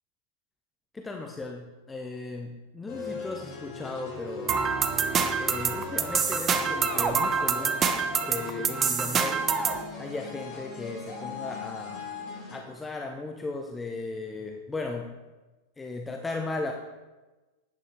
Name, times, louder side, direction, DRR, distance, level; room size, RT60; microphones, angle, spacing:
voice 1, 0.9-4.6 5.4-7.8 8.3-9.4 10.0-12.1 12.5-15.1 15.8-16.7, left 3 dB, 10° left, 2 dB, 0.8 m, -36 dB
sound 1, 2.9-12.6, left 4 dB, 40° left, 3.8 m, -39 dB
sound 2, 4.5-9.8, right 6 dB, 25° right, 0.7 m, -26 dB
11.0 x 8.7 x 3.4 m, 1.1 s
figure-of-eight pair, 90°, 0 cm